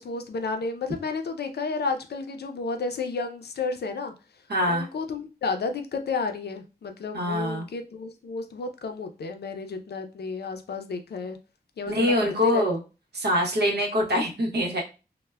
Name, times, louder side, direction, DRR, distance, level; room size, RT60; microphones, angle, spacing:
voice 1, 0.0-4.1 4.7-11.4 11.8-12.6, left 4 dB, 85° left, 6 dB, 0.4 m, -32 dB
voice 2, 4.5-4.9 7.1-7.6 11.9-12.8 13.1-14.8, equal, 85° right, -1 dB, 0.7 m, -24 dB
2.2 x 2.0 x 3.2 m, 0.31 s
wide cardioid pair, 80°, 16 cm